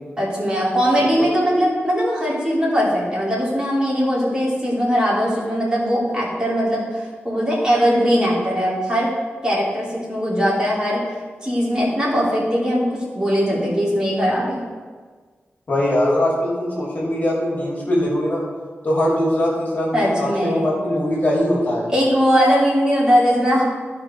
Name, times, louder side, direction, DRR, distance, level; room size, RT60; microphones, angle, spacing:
voice 1, 0.2-9.1 9.4-11.0 11.4-14.6 19.9-20.7 21.9-23.6, equal, 20° right, -7 dB, 3.4 m, -20 dB
voice 2, 15.7-18.4 18.8-21.9, left 1 dB, 45° left, -5 dB, 2.6 m, -21 dB
15.5 x 5.2 x 4.5 m, 1.5 s
wide cardioid pair, 125°, 4 cm